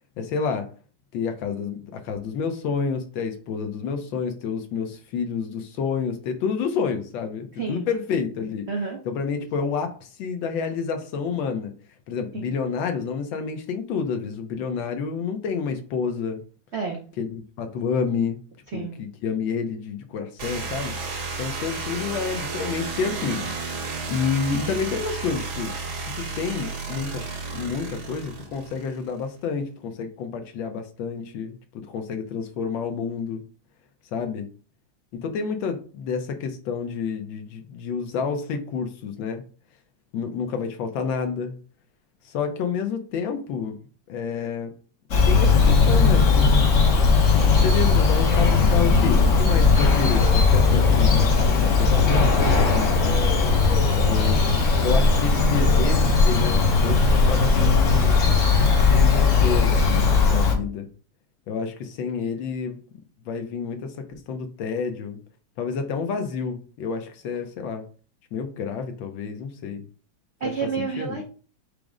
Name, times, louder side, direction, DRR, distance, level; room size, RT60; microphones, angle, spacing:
voice 1, 0.2-0.7 1.1-8.7 9.1-11.7 12.1-16.4 17.2-18.4 18.7-23.5 24.1-25.7 26.2-27.2 27.5-33.4 34.1-34.5 35.1-39.4 40.1-41.5 42.2-43.8 44.1-44.7 45.3-46.6 47.5-53.2 53.9-54.4 54.8-58.2 58.9-60.9 61.5-62.8 63.2-65.2 65.6-67.8 68.3-69.8 70.4-71.2, left 6 dB, 80° left, 7 dB, 1.4 m, -29 dB
voice 2, 7.6-7.9 8.7-9.0 12.3-12.5 16.7-17.0 18.7-19.0 70.4-71.3, right 6 dB, 60° right, 0 dB, 0.7 m, -29 dB
sound 1, 20.4-29.1, right 3 dB, 85° right, 2.1 m, -32 dB
Bird vocalization bird call bird song, 45.1-60.5, left 4 dB, 50° left, 1.0 m, -18 dB
4.9 x 2.0 x 4.7 m, 0.39 s
omnidirectional pair, 2.1 m